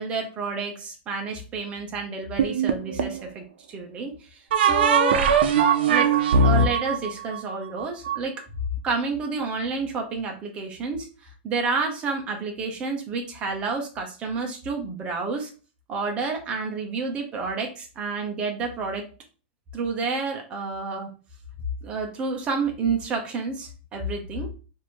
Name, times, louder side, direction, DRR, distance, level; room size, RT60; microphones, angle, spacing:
voice 1, 0.0-3.4 3.7-4.1 4.6-5.3 5.6-6.1 6.4-8.3 8.8-11.1 11.4-15.5 15.9-19.0 19.7-21.1 21.8-24.5, right 4 dB, 20° right, 3 dB, 0.8 m, -29 dB
sound 1, 2.4-3.2 4.5-8.2, right 5 dB, 70° right, 0.6 m, -20 dB
3.1 x 2.7 x 4.3 m, 0.35 s
supercardioid pair, 170°, 6 cm